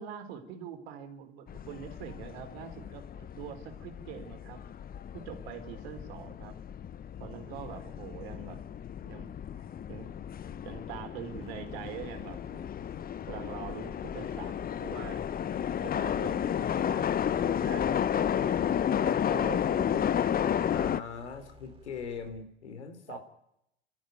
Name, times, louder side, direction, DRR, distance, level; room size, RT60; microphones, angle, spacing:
voice 1, 0.0-4.6 5.1-6.5 7.2-8.6 9.0-9.3 9.9-10.2 10.5-12.7 13.3-15.3 15.8-18.5 19.0-20.5 23.1-23.2, right 8 dB, 65° right, 6 dB, 3.8 m, -44 dB
sound 1, 1.5-21.0, left 9 dB, 25° left, 0.8 m, -32 dB
sound 2, 11.4-22.5, right 1 dB, 15° right, 4.1 m, -55 dB
voice 2, 20.7-23.2, left 6 dB, 80° left, 7 dB, 3.5 m, -41 dB
29.5 x 13.5 x 9.3 m, 0.79 s
figure-of-eight pair, 75°, 34 cm